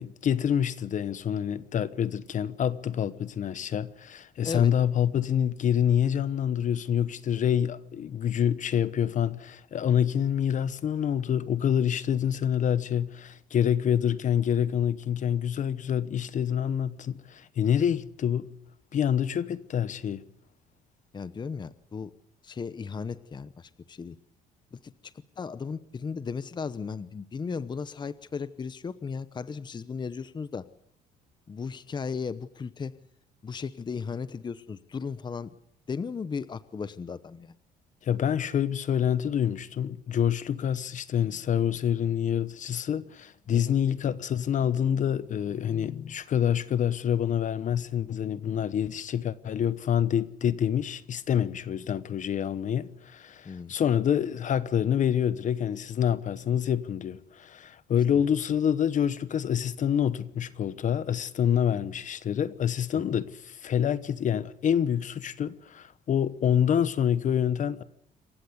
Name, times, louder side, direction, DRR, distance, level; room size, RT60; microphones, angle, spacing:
voice 1, 0.0-18.5 18.9-20.2 38.0-67.8, left 9 dB, 45° left, 1.1 m, -27 dB
voice 2, 21.1-22.1 22.4-24.2 24.7-24.9 25.4-30.7 31.5-32.9 33.4-35.5 35.9-37.5 43.5-43.8 53.4-53.7, left 5 dB, 25° left, 0.9 m, -35 dB
27.0 x 15.5 x 8.1 m
cardioid pair, 110°, 17 cm